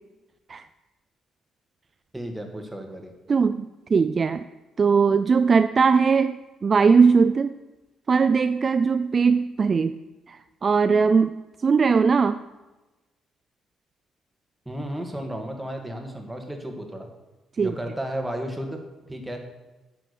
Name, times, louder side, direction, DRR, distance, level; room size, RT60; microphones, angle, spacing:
voice 1, 2.1-3.1 14.7-17.1 17.6-18.8 19.1-19.4, right 1 dB, 10° right, 3 dB, 1.8 m, -33 dB
voice 2, 3.3-4.5 4.8-6.4 6.6-7.6 8.1-10.0 10.3-11.3 11.6-12.4 17.6-17.7, right 5 dB, 40° right, 11 dB, 0.3 m, -20 dB
9.2 x 6.2 x 6.7 m, 1.1 s
cardioid pair, 90°, 0 cm